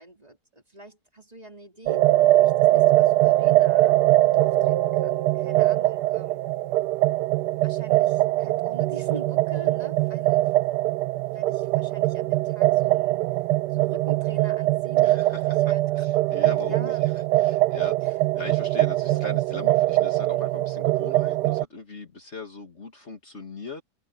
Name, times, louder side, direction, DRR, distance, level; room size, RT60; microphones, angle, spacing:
voice 1, 0.0-2.1 2.4-6.4 7.5-10.8 11.1-16.1 16.7-17.0 18.0-18.1, right 2 dB, 25° right, 3.6 m, -45 dB
sound 1, 1.9-21.7, right 16 dB, 80° right, 1.2 m, -22 dB
voice 2, 15.0-15.6 15.9-23.8, left 3 dB, 45° left, 2.3 m, -40 dB
omnidirectional pair, 1.8 m